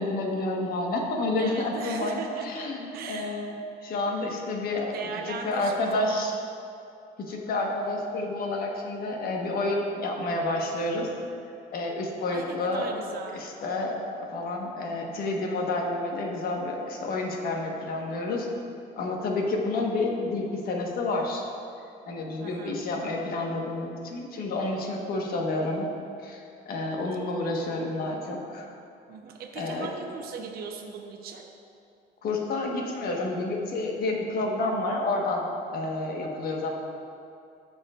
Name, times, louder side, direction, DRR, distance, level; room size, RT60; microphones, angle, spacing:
voice 1, 0.0-3.5 3.8-5.0 5.3-6.3 7.2-11.1 11.7-12.9 13.3-14.0 14.3-18.5 19.0-21.5 22.0-25.9 26.2-28.7 29.6-29.9 32.2-35.4 35.7-36.7, left 2 dB, 60° left, 0 dB, 1.3 m, -29 dB
voice 2, 1.4-2.6 2.9-3.5 4.9-6.4 12.3-13.5 22.4-22.8 29.1-31.5, right 5 dB, 65° right, 2 dB, 0.8 m, -38 dB
14.0 x 5.3 x 2.5 m, 2.6 s
cardioid pair, 110°, 17 cm